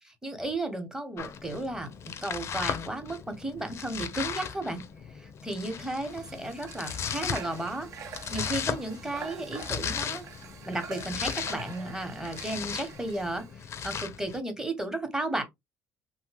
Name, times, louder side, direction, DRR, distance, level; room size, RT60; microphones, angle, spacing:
voice 1, 0.0-4.8 5.1-7.9 8.3-10.3 10.7-15.4, right 2 dB, 10° right, 0.9 m, -34 dB
Domestic sounds home sounds, 1.2-14.4, left 7 dB, 45° left, 0.5 m, -37 dB
Water / Water tap faucet, 6.0-13.5, right 6 dB, 60° right, 0.7 m, -45 dB
2.8 x 2.1 x 3.3 m
supercardioid pair, 85°, 6 cm